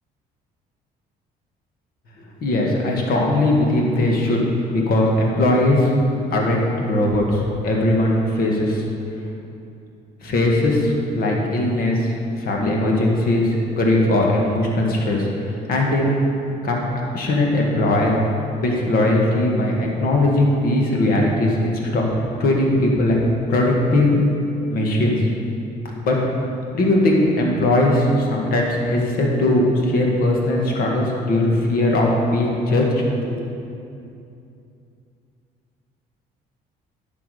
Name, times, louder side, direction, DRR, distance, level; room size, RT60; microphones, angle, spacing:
voice 1, 2.4-4.4 4.7-5.9 6.3-8.8 10.2-16.0 16.6-16.8 17.1-18.1 18.6-22.1 22.4-23.2 23.5-24.2 24.7-25.3 26.0-26.2 26.7-33.0 33.3-33.4, left 1 dB, 60° left, -1 dB, 1.8 m, -19 dB
10.5 x 6.2 x 4.9 m, 2.7 s
cardioid pair, 110°, 17 cm